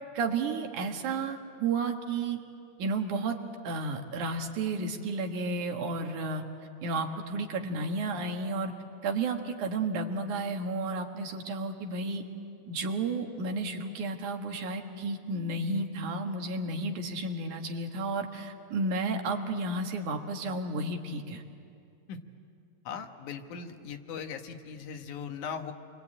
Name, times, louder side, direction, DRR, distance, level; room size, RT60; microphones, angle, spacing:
voice 1, 0.1-2.4 2.8-3.4 3.6-6.4 6.8-8.7 9.0-12.2 12.7-21.4, right 3 dB, 90° right, 4 dB, 3.1 m, -32 dB
voice 2, 22.9-25.7, left 6 dB, 90° left, 6 dB, 2.8 m, -39 dB
28.5 x 23.5 x 8.7 m, 2.6 s
omnidirectional pair, 3.4 m